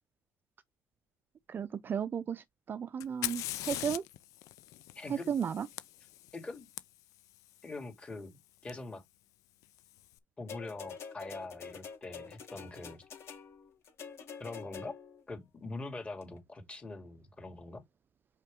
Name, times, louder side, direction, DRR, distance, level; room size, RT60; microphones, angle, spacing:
voice 1, 1.5-4.0 5.1-5.7, right 7 dB, 40° right, 0.5 m, -34 dB
Fire, 3.0-6.8 8.7-8.8 9.6-10.0, left 15 dB, 85° left, 0.5 m, -41 dB
voice 2, 4.9-5.3 6.3-6.7 7.6-8.4 8.6-9.0 10.4-13.0 14.4-14.9 15.3-17.8, left 2 dB, 20° left, 2.4 m, -43 dB
sound 1, 10.5-15.2 16.2-16.3, left 6 dB, 55° left, 2.5 m, -47 dB
5.4 x 5.0 x 3.6 m
cardioid pair, 110°, 5 cm